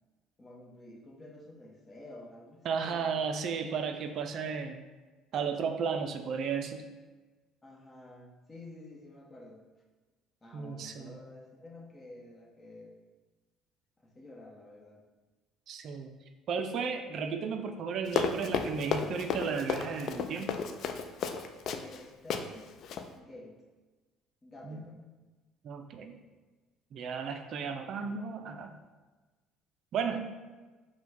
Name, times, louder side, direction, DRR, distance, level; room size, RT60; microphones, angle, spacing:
voice 1, 0.4-3.2 7.6-9.6 10.4-13.0 14.0-15.0 21.7-22.7 23.1-23.6 24.4-25.0, left 2 dB, 25° left, -1 dB, 1.0 m, -50 dB
voice 2, 2.6-4.8 5.3-6.8 10.5-11.2 15.7-16.1 16.5-20.5 24.7-24.8 25.6-26.2 26.9-28.8 29.9-30.3, right 6 dB, 60° right, 6 dB, 0.3 m, -34 dB
Run, 18.1-22.0 22.3-22.4 22.8-23.0, left 6 dB, 60° left, 0.3 m, -32 dB
4.4 x 2.2 x 4.2 m, 1.2 s
hypercardioid pair, 70°, 0 cm